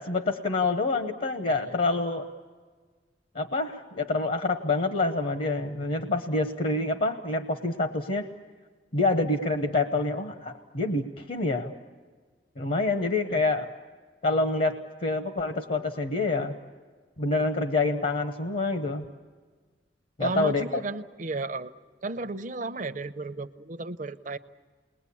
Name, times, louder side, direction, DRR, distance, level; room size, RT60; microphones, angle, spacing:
voice 1, 0.0-2.3 3.3-8.3 8.9-11.7 12.6-13.7 14.2-16.6 17.2-19.0 20.2-20.8, left 3 dB, 50° left, 7 dB, 1.0 m, -27 dB
voice 2, 20.2-21.7 22.0-24.4, right 3 dB, 45° right, 11 dB, 0.7 m, -33 dB
29.0 x 21.5 x 8.5 m, 1.5 s
head